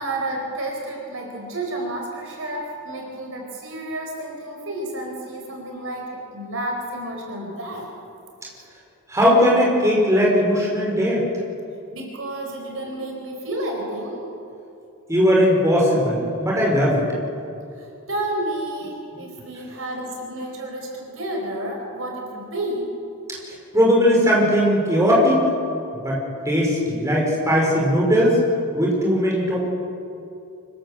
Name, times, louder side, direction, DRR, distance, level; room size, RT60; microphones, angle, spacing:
voice 1, 0.0-7.9 11.9-14.3 17.8-22.9, right 1 dB, 60° right, 0 dB, 4.8 m, -30 dB
voice 2, 9.1-11.2 15.1-17.1 23.5-25.4 25.9-28.4 28.7-29.6, equal, 15° right, -3 dB, 5.0 m, -19 dB
25.5 x 16.0 x 7.6 m, 2.6 s
head